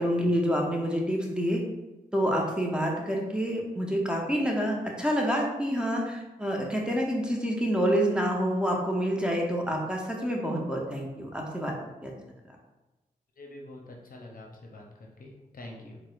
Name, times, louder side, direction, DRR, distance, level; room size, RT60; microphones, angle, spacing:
voice 1, 0.0-1.6 2.1-11.7 12.0-12.1, equal, 5° right, -1 dB, 0.8 m, -27 dB
voice 2, 13.4-14.8 15.2-16.0, left 1 dB, 60° left, 0 dB, 0.6 m, -45 dB
4.2 x 2.1 x 2.5 m, 1.1 s
cardioid pair, 40°, 16 cm